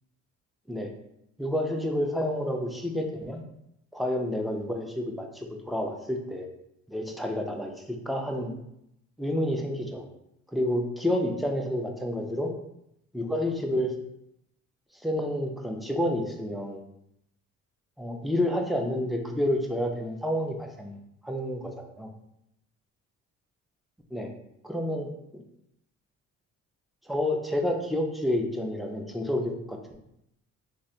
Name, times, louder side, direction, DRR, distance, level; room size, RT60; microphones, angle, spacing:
voice 1, 1.4-3.4 3.9-6.5 6.9-8.5 9.2-10.0 10.5-12.5 13.1-13.9 15.0-16.8 18.0-22.1 24.1-24.3 24.6-25.4 27.0-30.0, left 1 dB, ahead, 2 dB, 0.4 m, -29 dB
3.1 x 2.4 x 2.7 m, 0.80 s
cardioid pair, 90°, 30 cm